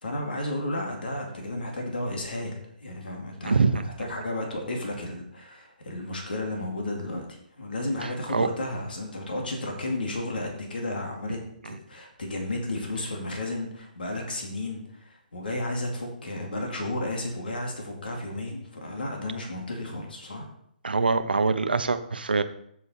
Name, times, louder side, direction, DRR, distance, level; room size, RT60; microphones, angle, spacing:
voice 1, 0.0-7.3 7.6-11.4 11.6-20.5, left 1 dB, 80° left, 1 dB, 2.4 m, -33 dB
voice 2, 3.4-3.8 8.3-8.5 20.8-22.4, right 4 dB, 90° right, 10 dB, 0.9 m, -23 dB
7.9 x 6.9 x 4.3 m, 0.70 s
hypercardioid pair, 145°, 5 cm